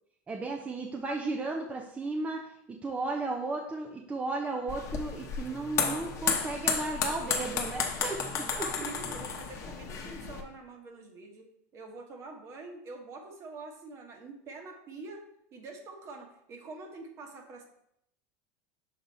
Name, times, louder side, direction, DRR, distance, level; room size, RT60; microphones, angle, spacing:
voice 1, 0.3-8.7, right 3 dB, 15° right, 1 dB, 0.6 m, -34 dB
sound 1, 4.7-10.4, left 6 dB, 40° left, 0.9 m, -33 dB
voice 2, 8.4-15.2 15.5-17.6, right 3 dB, 40° right, 3 dB, 1.2 m, -45 dB
6.3 x 3.9 x 4.1 m, 0.75 s
supercardioid pair, 130°, 8 cm